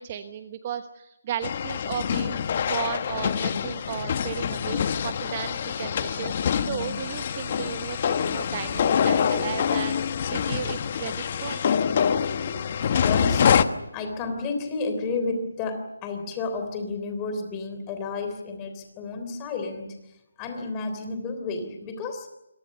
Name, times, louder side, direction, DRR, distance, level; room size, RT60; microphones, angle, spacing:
voice 1, 0.0-11.7, right 9 dB, 25° right, 9 dB, 1.1 m, -35 dB
sound 1, 1.4-13.6, left 7 dB, 30° left, 1.1 m, -25 dB
voice 2, 13.0-22.3, left 3 dB, 15° left, 6 dB, 3.4 m, -31 dB
27.5 x 23.0 x 6.8 m, 0.91 s
hypercardioid pair, 170°, 0 cm